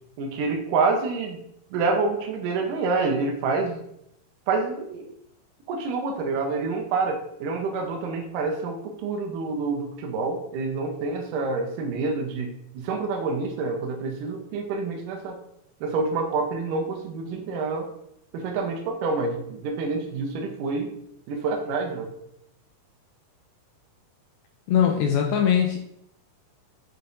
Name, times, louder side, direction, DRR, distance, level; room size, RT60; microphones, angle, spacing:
voice 1, 0.2-1.4 1.7-3.8 4.5-5.1 5.7-12.5 12.7-15.4 15.8-17.9 18.3-20.9 21.3-22.1, right 4 dB, 70° right, 1 dB, 2.2 m, -27 dB
voice 2, 24.7-25.8, left 8 dB, 80° left, 2 dB, 2.1 m, -21 dB
6.7 x 5.7 x 2.7 m, 0.75 s
omnidirectional pair, 4.6 m